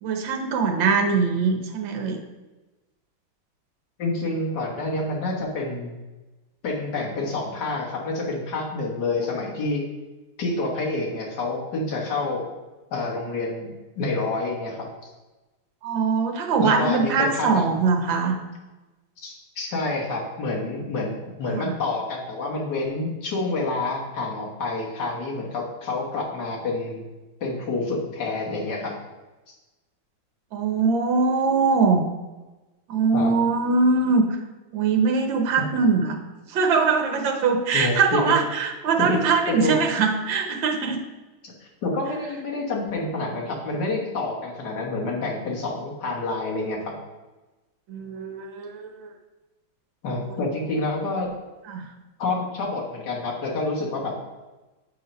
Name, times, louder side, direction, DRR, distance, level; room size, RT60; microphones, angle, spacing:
voice 1, 0.0-2.2 15.8-18.4 21.5-21.7 30.5-32.0 32.9-34.3 34.7-36.2 36.5-41.0 47.9-49.1 50.3-50.4 51.7-51.9, right 4 dB, 65° right, 3 dB, 1.6 m, -22 dB
voice 2, 4.0-5.9 6.6-9.8 10.4-12.5 12.9-15.1 16.6-17.7 19.2-27.0 27.4-28.9 29.5-29.6 33.1-33.3 37.7-38.3 39.0-39.2 39.5-39.7 41.4-46.9 50.0-51.3 52.2-54.1, left 2 dB, 55° left, -2 dB, 1.8 m, -28 dB
8.4 x 3.9 x 5.5 m, 1.2 s
omnidirectional pair, 2.4 m